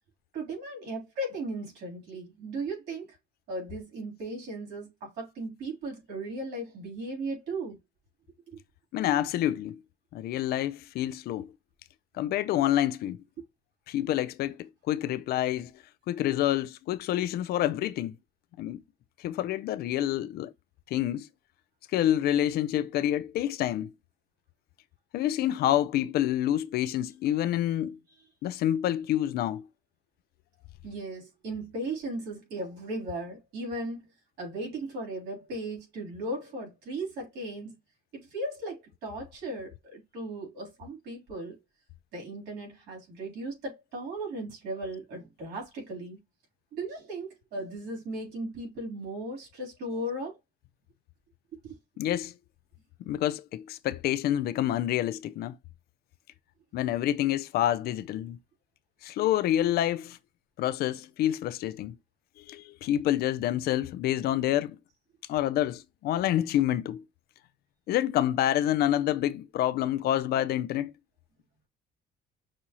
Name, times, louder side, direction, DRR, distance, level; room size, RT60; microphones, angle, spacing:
voice 1, 0.3-3.2 3.5-7.8 8.5-8.6 13.4-13.5 26.9-27.0 30.8-34.1 34.4-37.7 38.1-41.6 42.1-46.2 46.7-50.4 51.5-51.8, right 2 dB, 80° right, 3.3 m, -37 dB
voice 2, 8.9-9.8 10.1-11.5 12.1-13.2 13.9-15.7 16.1-18.1 18.6-18.8 19.2-20.5 20.9-21.3 21.9-23.9 25.1-28.0 28.4-29.7 52.0-52.3 53.1-55.6 56.7-58.4 59.0-60.2 60.6-61.9 62.5-64.8 65.3-67.0 67.9-70.9, left 12 dB, 70° left, 0.4 m, -27 dB
6.1 x 2.6 x 2.8 m
cardioid pair, 110°, 17 cm